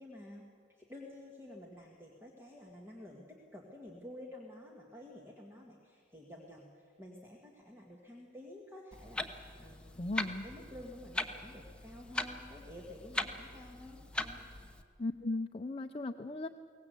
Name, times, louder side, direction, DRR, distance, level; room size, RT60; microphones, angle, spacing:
voice 1, 0.0-14.4, left 1 dB, 15° right, 0 dB, 1.9 m, -51 dB
Clock, 8.9-14.8, left 2 dB, 5° left, 1.0 m, -41 dB
voice 2, 10.0-10.5 15.0-16.5, left 2 dB, 30° left, 5 dB, 0.6 m, -37 dB
23.0 x 18.0 x 8.2 m, 2.1 s
head